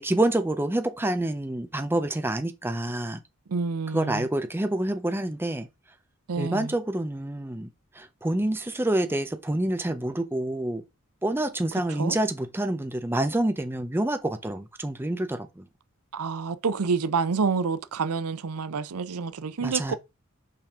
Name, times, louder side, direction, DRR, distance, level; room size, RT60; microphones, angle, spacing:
voice 1, 0.0-3.2 3.9-5.7 6.4-7.7 8.0-10.8 11.2-15.6 19.6-19.9, right 1 dB, 10° right, 0.5 m, -27 dB
voice 2, 3.5-4.2 6.3-6.7 12.0-12.2 16.1-19.9, right 5 dB, 85° right, 0.6 m, -28 dB
5.7 x 5.1 x 3.6 m
head